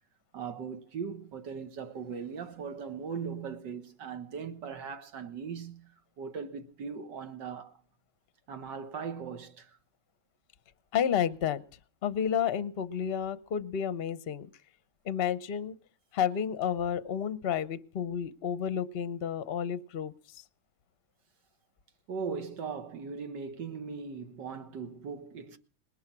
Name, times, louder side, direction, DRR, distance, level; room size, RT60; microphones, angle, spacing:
voice 1, 0.3-5.9 6.2-7.7 8.5-9.8 22.1-25.6, right 6 dB, 75° right, 2.0 m, -39 dB
voice 2, 10.9-11.6 12.0-14.5 15.0-15.7 16.1-20.4, left 8 dB, 45° left, 0.8 m, -31 dB
20.0 x 11.0 x 6.1 m
omnidirectional pair, 1.9 m